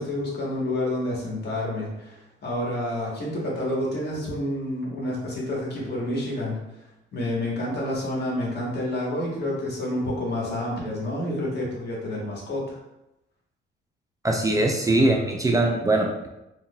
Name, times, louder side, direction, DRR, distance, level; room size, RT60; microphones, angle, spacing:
voice 1, 0.0-6.6 7.1-12.8, left 1 dB, 55° left, -3 dB, 1.2 m, -29 dB
voice 2, 14.2-16.3, right 2 dB, 15° right, 1 dB, 0.4 m, -22 dB
3.6 x 2.7 x 2.3 m, 0.91 s
cardioid pair, 90°, 20 cm